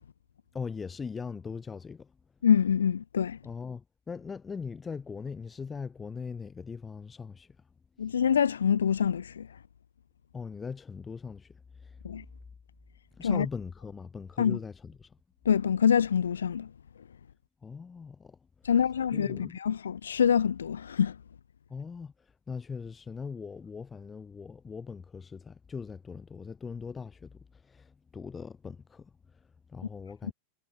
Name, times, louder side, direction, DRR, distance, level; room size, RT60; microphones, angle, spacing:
voice 1, 0.5-2.1 3.4-7.6 10.3-12.0 13.1-15.2 17.6-18.4 18.6-18.7 19.1-19.6 21.7-30.3, left 5 dB, 15° left, 5.3 m, -40 dB
voice 2, 2.4-3.4 8.0-9.5 12.0-12.2 13.2-13.5 14.4-14.6 15.5-16.7 18.6-21.1, left 8 dB, 70° left, 0.4 m, -25 dB
figure-of-eight pair, 90°, 0 cm